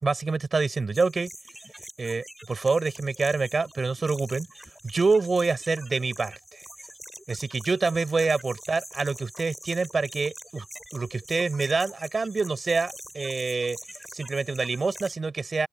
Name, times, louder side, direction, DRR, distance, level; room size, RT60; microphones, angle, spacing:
voice 1, 0.0-1.3 2.0-4.5 4.8-6.6 7.3-10.6 10.9-13.8 14.1-15.7, right 4 dB, 30° right, 5.0 m, -26 dB
sound 1, 0.9-15.1, equal, 5° right, 5.7 m, -45 dB
open air
cardioid pair, 90°, 0 cm